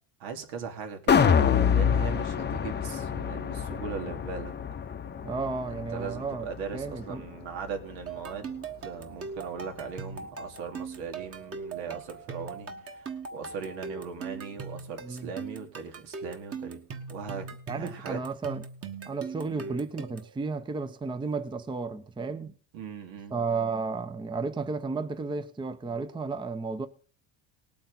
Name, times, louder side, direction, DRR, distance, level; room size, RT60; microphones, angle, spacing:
voice 1, 0.2-4.5 5.7-8.6 8.8-16.8 17.1-18.2 19.5-19.9 22.7-23.4, right 6 dB, 85° right, 2.7 m, -39 dB
sound 1, 1.1-7.3 7.7-7.8, left 7 dB, 25° left, 0.7 m, -26 dB
voice 2, 5.2-6.5 6.7-7.2 15.0-15.3 17.7-18.6 19.1-22.6 23.3-26.9, right 4 dB, 10° right, 0.6 m, -33 dB
sound 2, 8.1-20.4, right 5 dB, 30° right, 1.5 m, -40 dB
18.5 x 8.6 x 4.0 m
cardioid pair, 145°, 46 cm